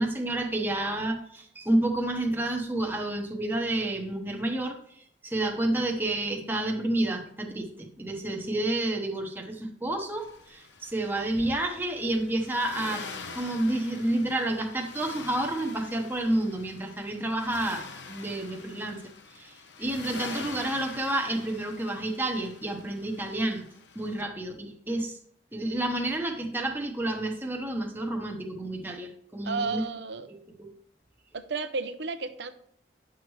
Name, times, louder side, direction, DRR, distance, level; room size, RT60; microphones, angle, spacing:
voice 1, 0.0-13.0 13.3-19.0 19.3-23.7 23.9-25.2 25.5-29.8 30.3-30.7, right 1 dB, 10° right, 2 dB, 0.9 m, -30 dB
Accelerating revving vroom, 10.2-24.2, left 4 dB, 90° left, 0.9 m, -45 dB
voice 2, 29.4-30.3 31.3-32.5, right 4 dB, 80° right, 9 dB, 0.7 m, -33 dB
10.0 x 6.3 x 3.1 m, 0.64 s
head